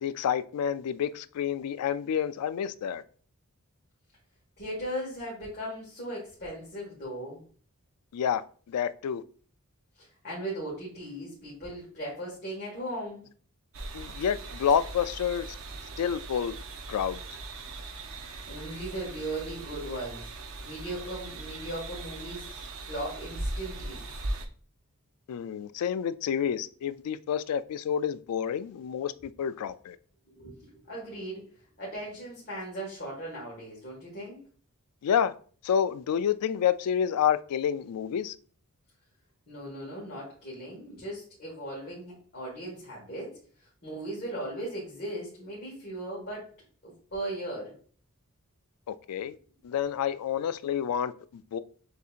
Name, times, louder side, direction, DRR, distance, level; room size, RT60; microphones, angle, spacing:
voice 1, 0.0-3.0 8.1-9.2 13.9-15.5 16.0-16.6 16.9-17.2 25.3-30.0 35.0-35.3 35.6-38.3 48.9-49.3 49.6-51.6, left 8 dB, 90° left, 0.3 m, -29 dB
voice 2, 4.6-7.4 10.0-13.2 18.4-20.3 20.6-24.0 30.4-34.4 39.5-46.5 46.8-47.8 50.3-50.4, right 1 dB, 45° left, 1.6 m, -38 dB
sound 1, 13.7-24.5, right 2 dB, 65° right, 0.7 m, -39 dB
6.4 x 2.7 x 2.4 m
head